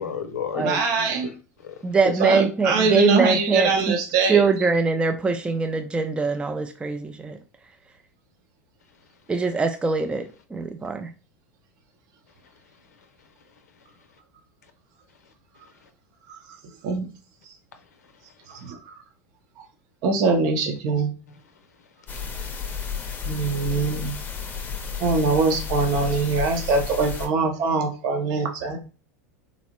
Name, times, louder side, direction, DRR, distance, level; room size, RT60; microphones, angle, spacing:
voice 1, 0.0-1.4 1.6-1.9 9.0-9.1 12.4-14.2 14.6-14.7 15.1-15.9 17.7-18.7 21.3-22.3 22.6-23.3, left 7 dB, 85° left, 0.5 m, -40 dB
voice 2, 0.6-1.3 2.2-4.5 16.3-16.4 16.6-17.1 18.5-18.9 19.6-19.7 20.0-21.1 23.3-24.1 25.0-28.8, right 4 dB, 55° right, 0.8 m, -23 dB
voice 3, 1.8-4.0 4.3-7.4 9.3-11.1, right 4 dB, 10° right, 0.4 m, -23 dB
sound 1, 22.1-27.3, left 7 dB, 20° left, 0.7 m, -32 dB
3.9 x 2.0 x 2.9 m
hypercardioid pair, 90°, 8 cm